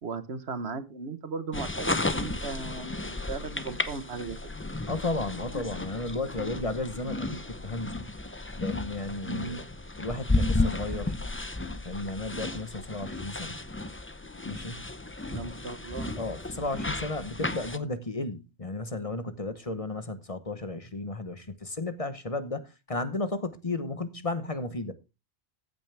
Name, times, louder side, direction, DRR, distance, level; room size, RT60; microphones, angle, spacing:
voice 1, 0.0-4.4 9.2-9.6 15.3-16.1, right 4 dB, 75° right, 1.4 m, -37 dB
sound 1, 1.5-17.8, left 2 dB, 15° left, 0.6 m, -33 dB
voice 2, 4.9-8.0 8.6-9.7 10.0-11.2 11.8-13.6 14.4-14.9 16.2-24.9, left 2 dB, 35° left, 1.0 m, -34 dB
15.0 x 9.1 x 3.4 m
omnidirectional pair, 1.1 m